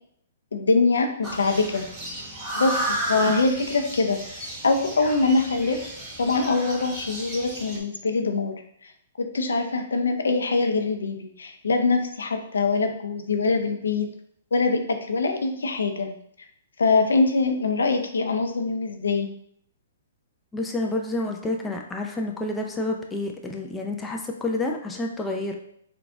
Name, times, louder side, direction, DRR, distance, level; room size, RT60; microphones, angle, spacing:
voice 1, 0.5-1.8 2.5-4.2 4.6-5.8 6.2-8.6 9.2-14.1 14.5-16.1 16.8-19.3, left 3 dB, 85° left, 5 dB, 0.5 m, -23 dB
sound 1, 1.2-7.8, right 1 dB, 15° right, 0.9 m, -33 dB
voice 2, 20.5-25.5, left 2 dB, 10° left, 1 dB, 0.4 m, -29 dB
3.7 x 2.3 x 3.5 m, 0.68 s
hypercardioid pair, 135°, 0 cm